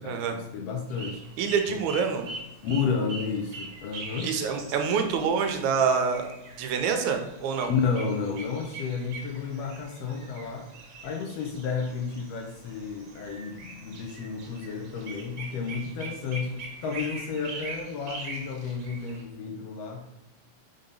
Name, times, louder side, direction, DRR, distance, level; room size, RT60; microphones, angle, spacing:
voice 1, 0.0-1.2 1.7-1.8 2.6-4.3 7.7-10.7 11.0-20.3, left 5 dB, 75° left, 2 dB, 1.6 m, -32 dB
sound 1, 0.9-19.2, right 3 dB, 65° right, 2.0 m, -43 dB
voice 2, 1.4-2.3 4.2-6.3 6.6-7.7, right 6 dB, 85° right, 5 dB, 2.1 m, -26 dB
5.4 x 3.9 x 5.2 m, 0.93 s
omnidirectional pair, 3.4 m